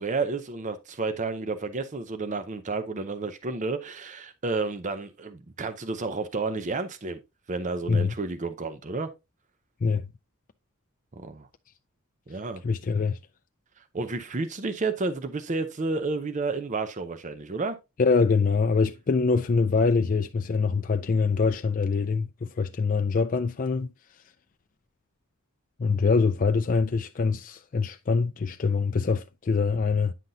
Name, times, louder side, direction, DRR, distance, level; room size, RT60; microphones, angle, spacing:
voice 1, 0.0-7.2 7.5-9.1 11.2-11.5 12.3-12.6 13.9-17.8, right 3 dB, 35° right, 0.6 m, -31 dB
voice 2, 12.6-13.2 18.0-23.9 25.8-30.1, left 4 dB, 40° left, 0.4 m, -24 dB
9.1 x 5.8 x 2.6 m
head